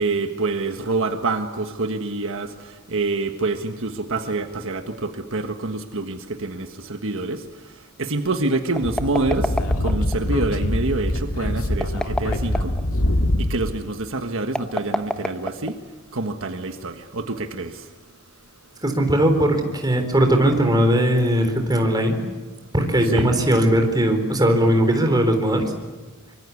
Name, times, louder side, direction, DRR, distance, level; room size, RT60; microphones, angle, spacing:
voice 1, 0.0-7.4 8.0-9.5 9.8-12.7 13.4-15.8 16.1-17.9 23.0-23.3, right 3 dB, 65° right, 6 dB, 1.5 m, -26 dB
Speech / Wind, 8.8-13.7, left 1 dB, 85° left, 1.9 m, -24 dB
sound 1, 8.8-10.2 11.7-12.8 14.5-16.0, left 1 dB, 5° left, 1.2 m, -27 dB
voice 2, 18.8-22.2 22.7-25.6, right 1 dB, 20° right, 5 dB, 4.0 m, -19 dB
25.0 x 24.5 x 8.5 m, 1.3 s
head